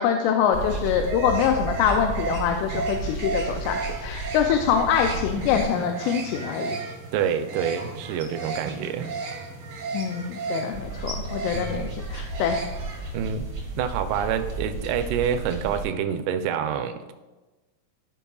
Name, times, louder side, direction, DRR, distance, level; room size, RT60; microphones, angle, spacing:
voice 1, 0.0-6.8 9.9-12.6, left 8 dB, 85° left, 4 dB, 2.7 m, -24 dB
sound 1, 0.5-15.8, right 3 dB, 55° right, 1.4 m, -32 dB
voice 2, 7.1-9.1 11.5-11.9 13.1-13.5 13.8-17.1, right 8 dB, 80° right, 7 dB, 2.4 m, -27 dB
13.5 x 5.4 x 2.3 m, 1.2 s
omnidirectional pair, 4.8 m